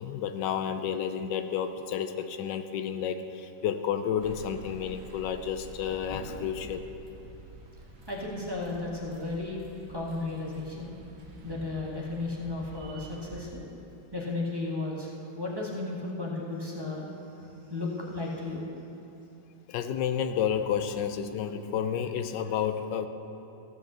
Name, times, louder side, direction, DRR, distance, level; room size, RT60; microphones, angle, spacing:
voice 1, 0.0-6.9 19.7-23.1, left 8 dB, 85° left, 9 dB, 1.3 m, -31 dB
sound 1, 4.2-13.5, right 3 dB, 45° right, 1.0 m, -48 dB
voice 2, 8.1-9.6 9.9-10.9 11.4-13.7 14.1-17.1 17.4-18.7, left 2 dB, 15° right, -4 dB, 1.5 m, -34 dB
15.5 x 5.5 x 7.4 m, 2.7 s
omnidirectional pair, 1.9 m